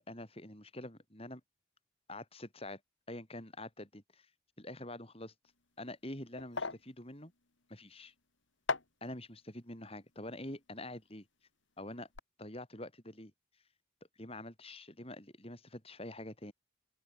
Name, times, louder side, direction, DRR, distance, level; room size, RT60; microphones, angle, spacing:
voice 1, 0.0-1.4 2.1-2.8 3.1-4.3 4.6-5.3 5.8-7.3 7.7-8.1 9.0-11.3 11.8-12.1 12.4-13.3 14.2-16.5, left 1 dB, 30° left, 5.7 m, -46 dB
sound 1, 5.5-11.6 11.9-12.2, left 4 dB, 75° left, 2.3 m, -43 dB
open air
head